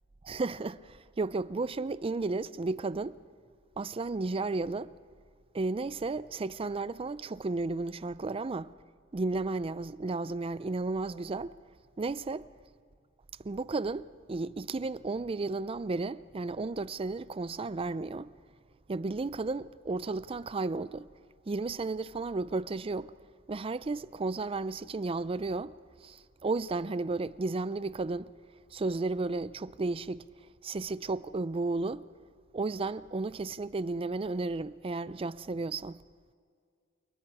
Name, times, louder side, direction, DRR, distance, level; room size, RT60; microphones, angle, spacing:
voice 1, 0.2-3.2 3.8-4.9 5.5-8.7 9.1-11.5 12.0-12.4 13.4-18.3 18.9-21.1 21.5-23.1 23.5-25.8 26.0-28.3 28.7-30.3 30.6-32.0 32.5-36.0, right 3 dB, 30° right, 0.4 m, -33 dB
29.0 x 19.0 x 4.9 m
head